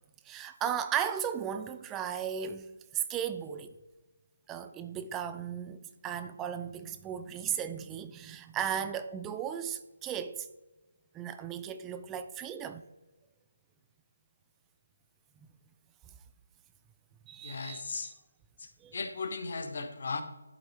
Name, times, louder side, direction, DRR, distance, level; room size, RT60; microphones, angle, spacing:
voice 1, 0.3-3.7 4.5-10.5 11.1-12.8 17.3-17.8 18.8-19.0, right 9 dB, 10° right, 0.3 m, -36 dB
voice 2, 17.4-18.1 18.6-20.2, left 4 dB, 55° left, 0.9 m, -37 dB
11.5 x 4.0 x 3.2 m
figure-of-eight pair, 155°, 0 cm